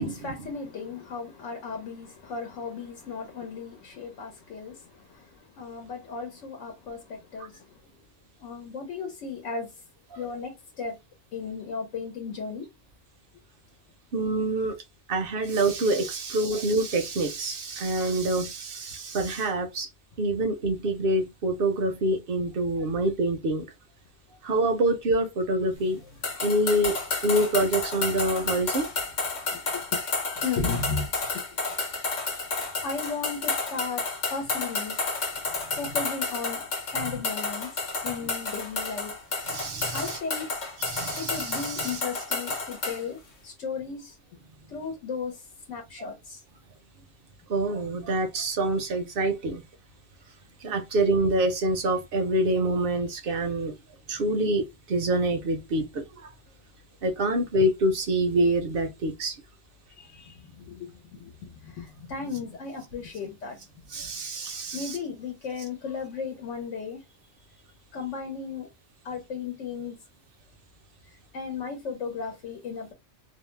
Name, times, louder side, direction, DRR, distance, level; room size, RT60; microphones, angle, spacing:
voice 1, 0.0-7.9 8.4-9.8 10.2-11.0 11.3-12.7 29.5-31.6 32.0-32.5 32.8-34.0 34.3-35.1 35.7-39.1 39.9-40.5 41.2-44.2 44.7-46.4 59.9-64.1 64.7-67.0 67.5-67.6 67.9-68.7 69.0-70.0 71.1-72.9, left 5 dB, 80° left, 1.0 m, -36 dB
voice 2, 14.1-14.8 15.1-19.9 20.2-23.6 24.4-26.0 26.4-28.9 39.5-40.2 40.8-42.0 47.5-49.6 50.6-53.7 54.1-56.3 57.0-59.4 63.9-65.0, right 1 dB, 60° right, 0.7 m, -26 dB
sound 1, 26.2-43.0, left 3 dB, 45° left, 0.7 m, -31 dB
2.6 x 2.0 x 3.1 m
omnidirectional pair, 1.3 m